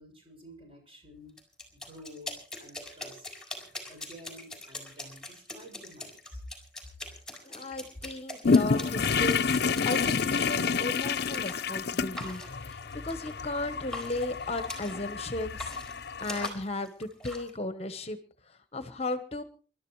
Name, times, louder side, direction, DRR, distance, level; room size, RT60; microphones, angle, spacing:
voice 1, 0.0-1.3 1.7-3.3 3.9-6.4, equal, 30° right, 2 dB, 6.9 m, -50 dB
sound 1, 1.4-10.6 11.3-11.6 12.2-13.6 13.9-15.1 15.4-17.5, left 1 dB, 5° left, 4.4 m, -42 dB
voice 2, 7.4-15.8 16.2-18.2 18.5-19.4, left 2 dB, 35° left, 10 dB, 1.0 m, -35 dB
sound 2, 8.4-16.5, left 5 dB, 60° left, 0.7 m, -29 dB
28.0 x 13.0 x 3.2 m, 0.40 s
head